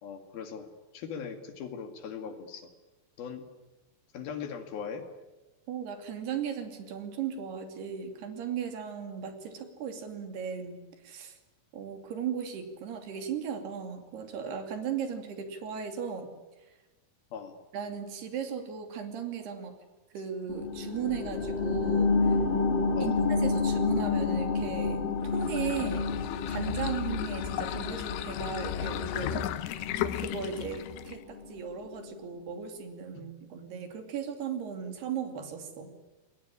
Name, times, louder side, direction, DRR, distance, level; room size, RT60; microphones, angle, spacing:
voice 1, 0.0-2.7 3.2-3.5 4.1-5.1 17.3-17.6 23.0-23.2, left 7 dB, 60° left, 7 dB, 3.7 m, -40 dB
voice 2, 5.7-10.8 11.0-11.4 11.7-16.3 17.7-19.8 20.1-22.4 23.0-25.0 25.3-26.1 26.5-29.4 30.0-35.9, right 7 dB, 65° right, 6 dB, 4.6 m, -36 dB
sound 1, 20.5-31.6 32.0-32.1, left 4 dB, 40° left, 2.0 m, -30 dB
sound 2, 25.2-31.2, left 11 dB, 80° left, 3.4 m, -35 dB
27.5 x 21.0 x 10.0 m, 1.1 s
omnidirectional pair, 5.1 m